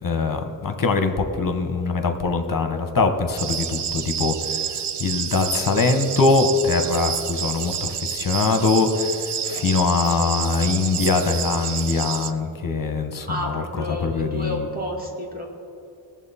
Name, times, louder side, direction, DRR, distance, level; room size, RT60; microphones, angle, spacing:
voice 1, 0.0-14.7, left 4 dB, 45° left, 7 dB, 1.0 m, -23 dB
sound 1, 3.4-12.3, right 8 dB, 70° right, 0.6 m, -29 dB
voice 2, 13.3-15.5, equal, 20° right, -2 dB, 2.0 m, -30 dB
18.5 x 7.4 x 4.2 m, 2.5 s
wide cardioid pair, 130°, 44 cm